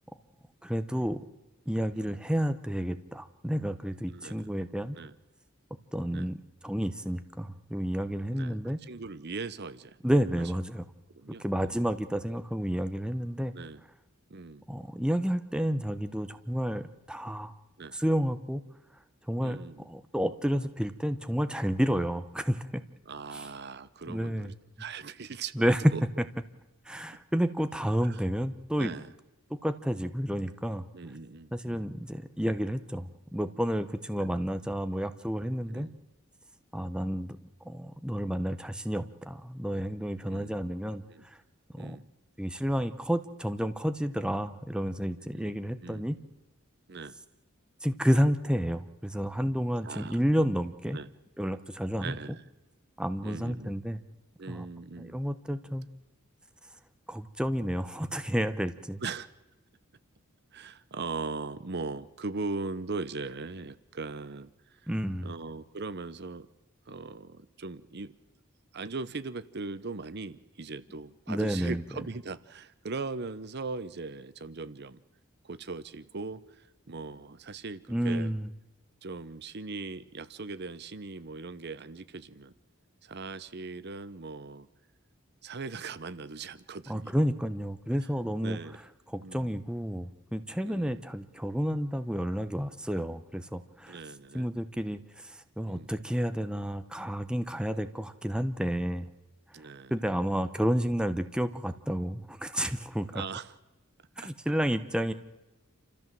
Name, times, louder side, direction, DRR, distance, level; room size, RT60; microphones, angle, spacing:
voice 1, 0.6-1.2 1.7-5.0 5.9-6.4 6.6-8.8 10.0-10.8 11.4-13.5 14.7-17.5 17.9-18.6 19.3-22.7 23.3-23.4 24.1-24.5 25.6-25.8 26.9-28.9 29.6-30.9 31.5-35.9 36.7-37.4 37.6-41.0 41.7-42.0 42.4-46.2 47.8-51.0 51.4-52.1 53.0-54.0 54.5-54.7 55.0-55.9 57.1-59.0 64.9-65.3 71.3-71.8 77.9-78.5 86.9-88.6 89.1-94.0 94.3-99.1 99.9-103.2 104.2-105.1, equal, 5° right, 9 dB, 0.8 m, -30 dB
voice 2, 4.1-4.6 5.0-5.1 6.1-6.3 8.3-10.0 11.1-11.7 13.5-13.8 14.3-14.6 17.8-18.0 19.4-19.9 23.1-25.5 25.9-26.0 28.0-28.2 28.8-29.1 30.9-31.9 34.2-34.3 35.7-36.0 40.2-40.7 41.1-41.2 41.8-42.1 45.3-46.0 46.9-47.2 49.8-50.2 50.9-51.1 52.0-52.4 53.2-53.8 54.4-55.2 59.0-59.3 60.5-64.5 64.8-64.9 65.2-66.5 66.9-68.1 68.7-75.0 75.4-78.3 79.0-82.5 83.0-84.7 85.4-87.1 88.4-88.8 89.2-89.6 90.6-91.0 93.9-94.5 95.7-95.9 99.5-100.0 103.1-103.5 104.2-104.3, right 4 dB, 55° right, 15 dB, 0.9 m, -40 dB
28.0 x 14.0 x 7.6 m, 1.0 s
head